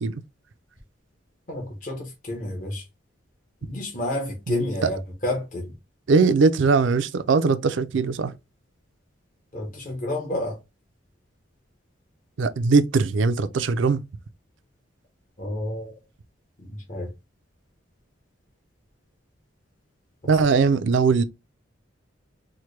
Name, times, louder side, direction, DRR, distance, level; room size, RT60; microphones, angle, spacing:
voice 1, 1.5-2.8 3.6-5.7 9.5-10.6 15.4-16.0 16.6-17.1, left 1 dB, 40° left, 1.0 m, -30 dB
voice 2, 4.5-4.9 6.1-8.3 12.4-14.0 20.2-21.2, right 4 dB, 70° right, 0.4 m, -20 dB
4.5 x 2.1 x 3.1 m
head